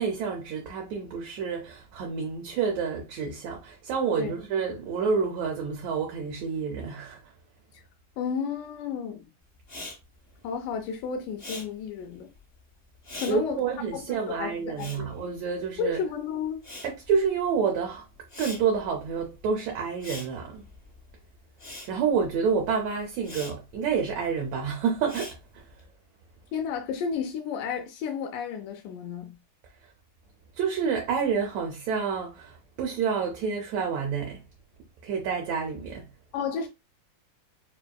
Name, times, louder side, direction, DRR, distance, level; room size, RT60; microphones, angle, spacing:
voice 1, 0.0-7.3 13.3-16.0 16.8-18.1 18.4-20.7 21.9-25.7 30.5-34.4 35.0-36.1, right 6 dB, 75° right, 1.7 m, -28 dB
voice 2, 8.2-9.3 10.4-12.3 13.2-13.6 13.9-15.1 15.8-16.7 26.5-29.4 36.3-36.7, left 6 dB, 80° left, 2.2 m, -32 dB
Respiratory sounds, 9.6-16.1 16.3-25.8, left 2 dB, 25° left, 1.4 m, -44 dB
5.3 x 2.7 x 2.2 m
omnidirectional pair, 3.8 m